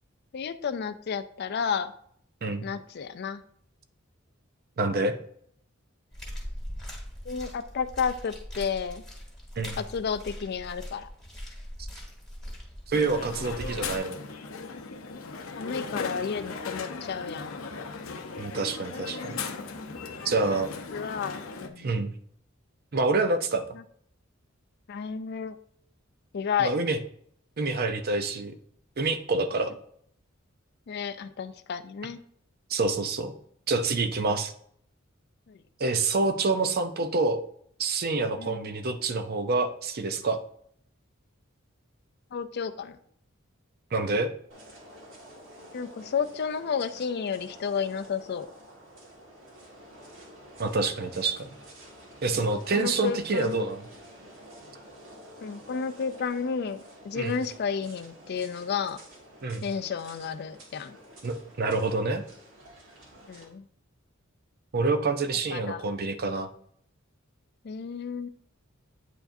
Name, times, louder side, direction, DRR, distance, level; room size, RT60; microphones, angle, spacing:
voice 1, 0.3-1.9 2.6-3.4 7.3-9.0 9.8-11.1 15.5-17.6 20.9-21.9 24.9-25.6 26.3-26.7 30.9-32.2 35.5-35.6 38.4-38.7 42.3-43.0 45.7-48.5 52.3-52.5 52.7-53.7 55.4-59.0 59.6-61.0 63.3-63.6 65.5-65.8 67.6-68.3, left 6 dB, 55° left, 11 dB, 0.4 m, -32 dB
voice 2, 4.8-5.1 9.6-9.8 11.8-11.9 12.9-14.2 18.4-19.4 20.2-20.7 21.8-22.1 22.9-23.7 26.6-27.0 27.6-28.6 29.0-29.7 32.7-33.3 33.7-34.5 35.8-37.4 37.8-40.4 43.9-44.3 50.6-51.5 52.2-53.8 57.1-57.3 59.4-59.7 61.2-62.2 64.7-66.5, right 3 dB, 50° right, 9 dB, 0.6 m, -27 dB
sound 1, 6.1-14.0, equal, ahead, 1.8 m, -41 dB
Crowd, 12.9-21.7, left 4 dB, 90° left, 0.7 m, -37 dB
sound 2, 44.5-63.4, right 1 dB, 65° right, 1.9 m, -50 dB
8.8 x 4.7 x 2.6 m, 0.64 s
head